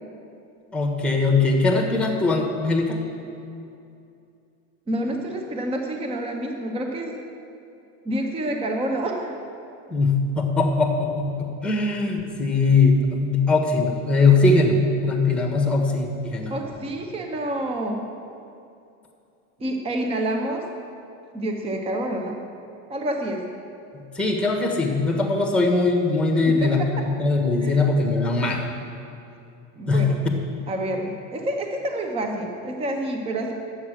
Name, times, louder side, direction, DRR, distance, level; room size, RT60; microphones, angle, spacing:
voice 1, 0.7-3.0 9.9-14.8 15.0-16.6 24.1-28.7 29.9-30.0, left 3 dB, 5° left, 0 dB, 1.3 m, -21 dB
voice 2, 4.9-7.2 8.0-9.4 16.5-18.0 19.6-20.7 21.3-22.4 22.9-23.4 26.4-27.0 27.6-27.8 29.8-30.2 30.7-33.5, right 1 dB, 15° right, 3 dB, 0.8 m, -28 dB
10.5 x 8.1 x 6.3 m, 2.6 s
supercardioid pair, 145°, 38 cm